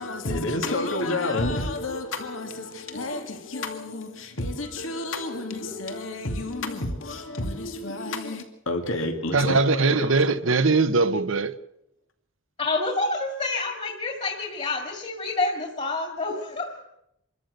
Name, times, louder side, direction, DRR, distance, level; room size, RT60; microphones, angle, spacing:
voice 1, 0.0-10.2, left 2 dB, 90° left, 2.3 m, -30 dB
voice 2, 9.3-11.6, right 3 dB, 85° right, 1.0 m, -21 dB
voice 3, 12.6-16.8, left 3 dB, 35° left, 2.3 m, -28 dB
26.0 x 13.5 x 8.0 m
head